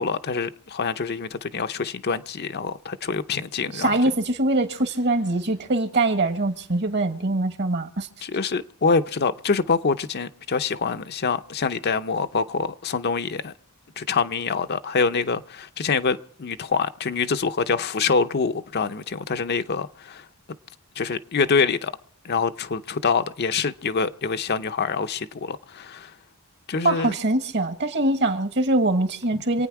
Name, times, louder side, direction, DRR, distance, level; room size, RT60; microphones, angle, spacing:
voice 1, 0.0-3.9 8.2-13.5 14.0-20.2 21.0-21.9 22.2-26.1 26.7-27.1, left 5 dB, 50° left, 0.6 m, -25 dB
voice 2, 3.7-8.1 26.8-29.7, right 2 dB, 55° right, 1.5 m, -23 dB
27.0 x 9.2 x 4.7 m
head